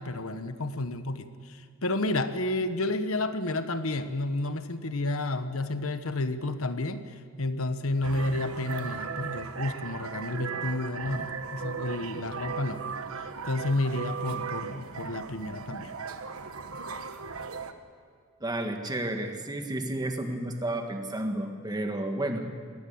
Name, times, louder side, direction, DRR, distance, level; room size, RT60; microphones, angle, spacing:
voice 1, 0.0-7.0 7.4-12.8 13.4-15.9, left 2 dB, 70° left, 10 dB, 1.3 m, -31 dB
sound 1, 8.0-17.7, right 5 dB, 70° right, 1.3 m, -37 dB
voice 2, 18.4-22.5, right 1 dB, 20° right, 4 dB, 1.8 m, -31 dB
20.5 x 17.5 x 8.7 m, 2.1 s
head